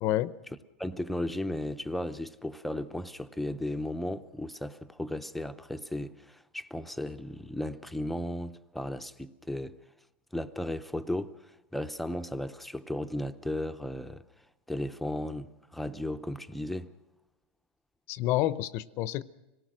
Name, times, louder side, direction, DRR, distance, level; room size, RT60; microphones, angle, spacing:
voice 1, 0.0-0.3 18.1-19.2, left 14 dB, 40° left, 0.7 m, -28 dB
voice 2, 0.8-9.8 10.3-14.2 14.7-16.9, left 1 dB, ahead, 0.7 m, -35 dB
26.0 x 18.5 x 6.4 m
supercardioid pair, 145°, 6 cm